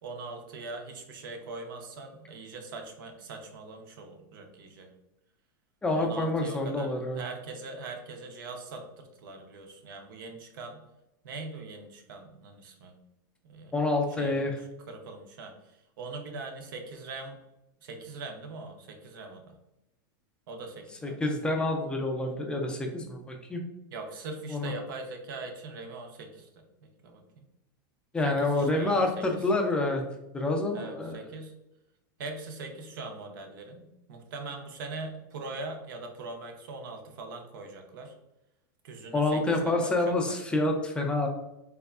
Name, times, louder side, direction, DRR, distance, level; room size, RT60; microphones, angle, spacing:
voice 1, 0.0-4.9 5.9-10.8 11.2-13.0 13.4-13.7 14.2-14.5 14.9-17.4 17.8-19.6 20.5-21.2 23.9-26.6 27.0-27.4 28.2-29.4 30.7-31.5 32.2-38.1 38.8-39.9 40.3-40.4, right 3 dB, 70° right, 4 dB, 0.6 m, -41 dB
voice 2, 5.8-7.2 13.7-14.6 21.0-23.6 24.5-24.7 28.1-30.0 30.3-31.2 39.1-41.3, left 2 dB, 10° left, 2 dB, 0.3 m, -27 dB
3.4 x 2.1 x 2.3 m, 0.90 s
supercardioid pair, 145°, 11 cm